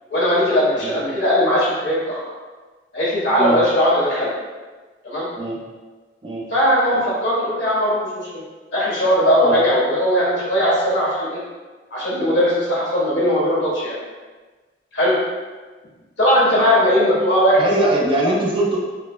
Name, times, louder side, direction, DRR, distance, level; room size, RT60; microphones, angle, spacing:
voice 1, 0.1-2.3 2.9-4.3 5.0-5.3 6.5-8.3 8.7-11.4 11.9-14.0 14.9-15.2 16.2-17.9, equal, 70° left, -8 dB, 1.5 m, -18 dB
voice 2, 17.5-18.9, right 1 dB, 30° right, -3 dB, 0.5 m, -22 dB
4.8 x 2.0 x 2.2 m, 1.3 s
head